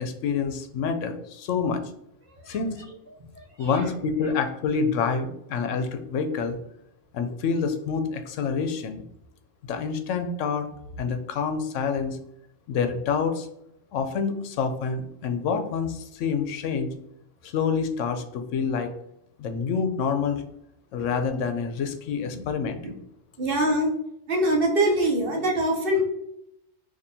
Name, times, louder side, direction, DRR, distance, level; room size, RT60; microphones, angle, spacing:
voice 1, 0.0-1.8 2.5-2.9 3.6-6.6 7.1-9.0 9.7-10.7 11.0-12.2 12.7-13.5 13.9-16.9 17.4-18.9 19.4-20.4 20.9-22.8, left 5 dB, 80° left, 7 dB, 0.9 m, -27 dB
voice 2, 3.3-3.9 22.8-22.9 23.4-23.9 24.3-26.0, right 1 dB, 50° right, 0 dB, 0.9 m, -24 dB
4.2 x 2.8 x 2.6 m, 0.78 s
omnidirectional pair, 1.3 m